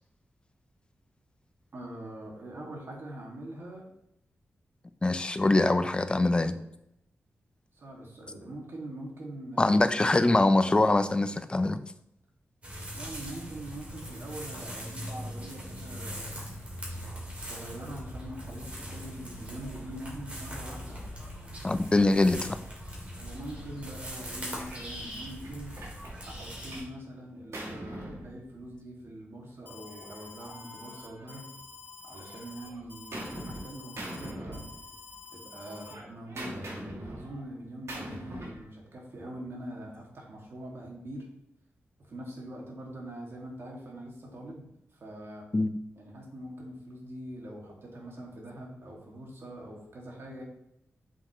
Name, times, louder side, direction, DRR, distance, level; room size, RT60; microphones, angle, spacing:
voice 1, 1.7-3.9 5.9-6.6 7.7-9.8 12.9-16.5 17.4-21.0 21.9-22.6 23.1-25.7 26.2-31.5 32.0-34.7 35.3-41.3 42.0-45.5 46.0-50.4, right 1 dB, 55° right, -1 dB, 2.1 m, -43 dB
voice 2, 5.0-6.5 9.6-11.8 21.6-22.4 45.5-45.7, left 2 dB, 20° left, 11 dB, 0.5 m, -23 dB
sound 1, 12.6-26.8, equal, 30° right, 2.6 m, -41 dB
Gunshot gunfire, 24.7-24.9 25.4-27.0 27.2-28.9 29.9-31.7 32.1-33.7 34.0-35.2 35.5-38.7, right 1 dB, 75° right, 2.3 m, -43 dB
Alarm, 29.7-35.9, left 4 dB, 45° left, 0.9 m, -48 dB
7.7 x 6.5 x 3.1 m, 0.79 s
wide cardioid pair, 140°, 5 cm